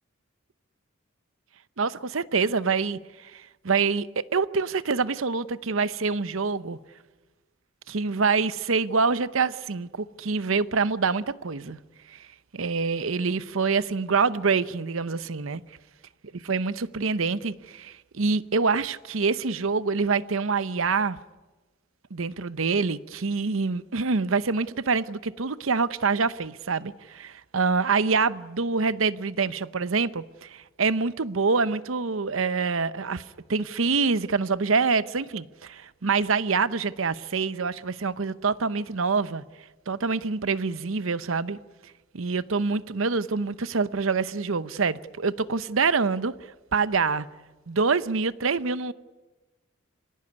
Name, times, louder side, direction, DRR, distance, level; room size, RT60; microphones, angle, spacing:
voice 1, 1.8-6.8 7.9-11.8 12.1-12.2 12.5-15.6 16.5-21.2 22.1-33.2 33.5-39.4 39.9-41.6 42.1-46.3 46.7-47.3 47.7-48.9, right 4 dB, 70° right, 0.8 m, -26 dB
25.5 x 17.5 x 9.6 m
head